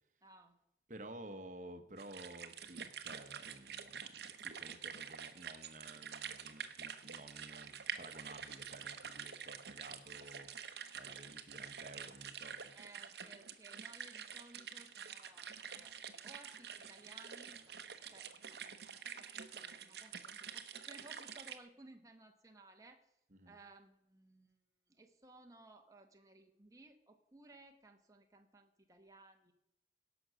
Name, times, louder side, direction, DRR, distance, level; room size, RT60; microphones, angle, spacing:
voice 1, 0.2-0.6 12.7-16.0 16.2-17.7 18.1-23.1 23.5-24.6 24.9-29.5, right 2 dB, 20° right, 4 dB, 1.2 m, -60 dB
voice 2, 0.9-10.5 10.9-12.7 23.3-23.6, right 1 dB, 45° right, 8 dB, 1.1 m, -53 dB
sound 1, 2.0-21.6, right 7 dB, 70° right, 0.9 m, -48 dB
17.0 x 6.2 x 6.3 m, 0.82 s
head